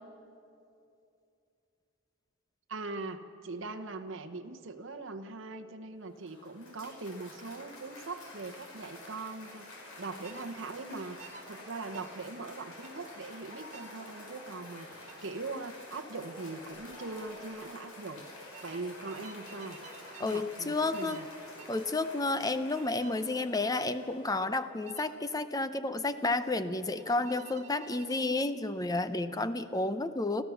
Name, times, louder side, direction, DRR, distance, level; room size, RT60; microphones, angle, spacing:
voice 1, 2.7-18.3 18.6-19.8 20.2-21.3, right 3 dB, 60° right, 6 dB, 1.0 m, -41 dB
Cheering / Applause, 6.0-24.6, left 1 dB, 85° left, 5.3 m, -49 dB
sound 1, 10.2-10.5 11.2-11.4 11.9-12.1 12.8-13.0 13.7-14.0 15.1-15.3 16.7-17.0 17.3-17.6 18.5-20.5 20.9-21.3 21.6-21.9 22.7-23.2 23.6-23.9 24.8-25.1 27.0-28.3, right 6 dB, 35° right, 2.1 m, -52 dB
voice 2, 20.2-21.2 21.7-30.4, left 2 dB, 15° left, 11 dB, 0.6 m, -31 dB
29.5 x 14.5 x 7.0 m, 2.7 s
head